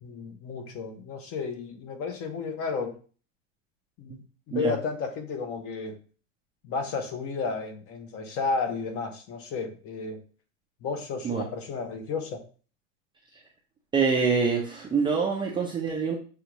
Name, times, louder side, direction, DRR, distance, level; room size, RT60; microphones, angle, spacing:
voice 1, 0.0-3.0 4.0-6.0 6.6-10.2 10.8-12.4, left 4 dB, 35° left, 6 dB, 0.9 m, -32 dB
voice 2, 13.9-16.2, right 5 dB, 10° right, -2 dB, 0.5 m, -25 dB
6.5 x 2.4 x 3.0 m, 0.39 s
supercardioid pair, 135°, 41 cm